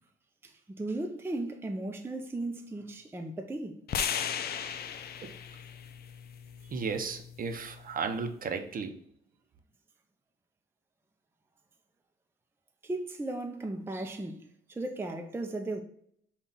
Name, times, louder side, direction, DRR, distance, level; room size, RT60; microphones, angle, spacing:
voice 1, 0.4-3.8 12.8-15.8, right 2 dB, 10° right, 0.5 m, -36 dB
sound 1, 3.9-8.1, left 8 dB, 50° left, 0.5 m, -37 dB
voice 2, 6.7-9.0, right 5 dB, 45° right, 0.7 m, -34 dB
5.5 x 2.4 x 4.0 m
cardioid pair, 90°, 20 cm